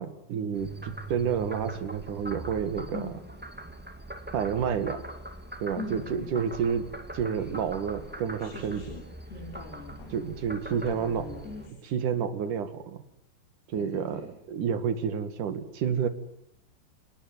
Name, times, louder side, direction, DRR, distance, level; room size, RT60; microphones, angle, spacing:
voice 1, 0.0-3.1 4.3-5.0 5.6-6.9 7.1-8.8 10.1-11.3 11.8-13.0 13.7-16.1, right 7 dB, 55° right, 11 dB, 3.3 m, -30 dB
Frog, 0.5-11.7, right 1 dB, 5° right, 1.3 m, -42 dB
voice 2, 5.8-6.3 8.4-9.0 9.3-10.2 10.7-11.7 13.7-14.3, left 3 dB, 90° left, 2 dB, 5.7 m, -41 dB
29.0 x 19.5 x 9.5 m, 0.77 s
omnidirectional pair, 4.6 m